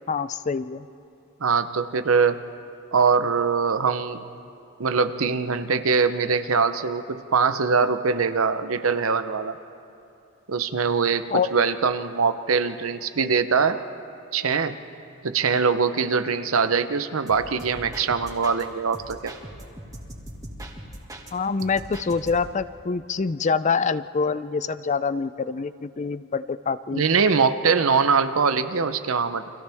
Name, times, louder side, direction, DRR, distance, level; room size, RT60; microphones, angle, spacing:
voice 1, 0.1-0.9 11.3-11.5 21.3-27.0, left 5 dB, 35° left, 15 dB, 0.4 m, -25 dB
voice 2, 1.4-2.4 2.9-4.2 4.8-9.6 10.5-13.8 14.3-14.8 15.2-19.3 26.9-29.5, right 5 dB, 85° right, 10 dB, 0.8 m, -22 dB
sound 1, 17.3-18.6 18.9-21.3 21.6-22.6, right 1 dB, 15° right, 1.9 m, -40 dB
30.0 x 25.0 x 3.5 m, 2.6 s
head